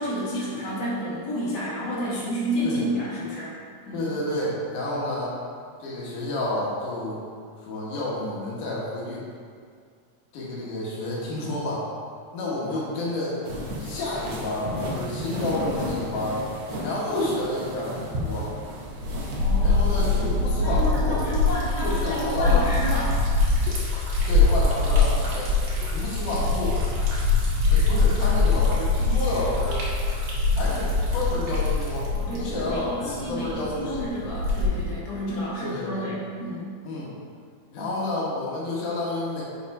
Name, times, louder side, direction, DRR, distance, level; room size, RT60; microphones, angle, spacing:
voice 1, 0.0-3.5 3.8-4.1 19.4-19.9 20.6-23.2 32.1-36.7, equal, 35° left, -9 dB, 2.2 m, -30 dB
voice 2, 3.9-5.3 5.8-7.2 7.6-9.3 10.3-11.8 12.3-13.4 13.8-16.4 16.8-18.5 19.6-21.2 21.8-22.6 24.3-25.6 25.9-26.8 27.7-29.9 30.5-34.0 35.6-36.1 36.8-37.1 37.7-39.4, left 2 dB, 85° left, -6 dB, 3.0 m, -30 dB
sound 1, 13.5-20.7, equal, 60° right, 1.7 m, -34 dB
Liquid, 18.9-35.0, left 3 dB, 80° right, 3.1 m, -23 dB
7.1 x 4.6 x 4.7 m, 2.1 s
omnidirectional pair, 3.5 m